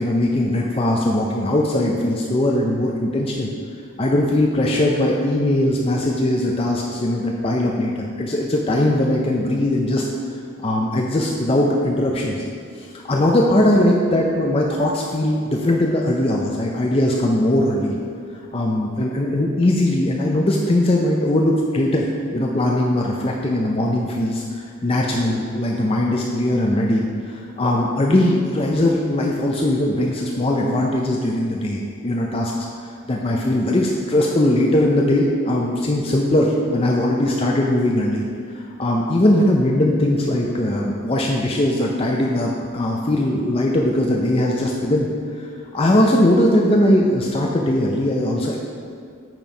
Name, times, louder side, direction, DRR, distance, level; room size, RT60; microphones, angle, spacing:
voice 1, 0.0-3.5 4.0-10.1 10.6-12.4 12.8-18.0 18.5-22.1 22.3-24.4 24.8-38.2 38.5-45.1 45.3-45.5 45.7-48.6, left 1 dB, 25° left, -1 dB, 0.5 m, -20 dB
9.0 x 4.5 x 5.1 m, 2.3 s
head